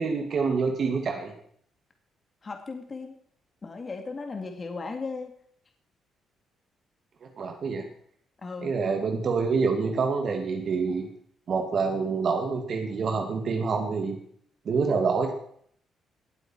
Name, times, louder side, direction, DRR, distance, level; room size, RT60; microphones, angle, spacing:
voice 1, 0.0-1.3 7.2-7.9 8.6-11.1 11.5-14.2 14.7-15.3, right 5 dB, 55° right, 3 dB, 2.3 m, -27 dB
voice 2, 2.4-3.1 3.6-5.3 8.4-8.7, left 4 dB, 35° left, 4 dB, 2.0 m, -36 dB
18.5 x 8.0 x 4.6 m, 0.63 s
cardioid pair, 90°, 0 cm